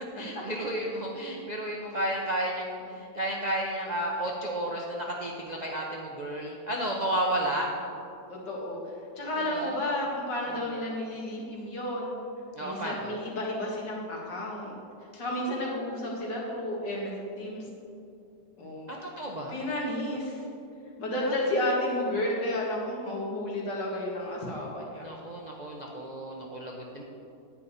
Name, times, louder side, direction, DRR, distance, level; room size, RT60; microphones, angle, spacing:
voice 1, 0.1-7.7 9.5-9.7 10.6-10.7 12.5-13.1 18.9-19.6 21.1-21.3 25.0-27.0, right 1 dB, 70° right, -1 dB, 0.4 m, -32 dB
voice 2, 8.3-8.8 9.2-12.1 12.6-14.7 15.2-17.7 18.6-18.9 19.5-20.4 21.0-25.1, left 1 dB, 65° left, -3 dB, 2.5 m, -32 dB
10.5 x 9.0 x 4.2 m, 2.6 s
omnidirectional pair, 2.1 m